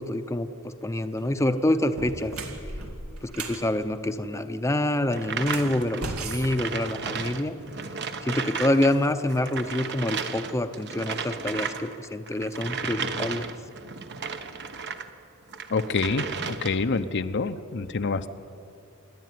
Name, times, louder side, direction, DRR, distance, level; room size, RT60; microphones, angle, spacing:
voice 1, 0.0-2.3 3.2-7.6 8.2-13.5, left 1 dB, 15° left, 8 dB, 0.7 m, -26 dB
sound 1, 1.0-1.3 1.8-3.6 5.3-7.4, right 2 dB, 85° right, 2.3 m, -36 dB
sound 2, 5.1-8.9 9.2-15.1 15.5-16.9, right 5 dB, 55° right, 1.1 m, -34 dB
voice 2, 15.7-18.3, left 4 dB, 55° left, 9 dB, 0.7 m, -27 dB
28.0 x 11.0 x 9.4 m, 2.5 s
head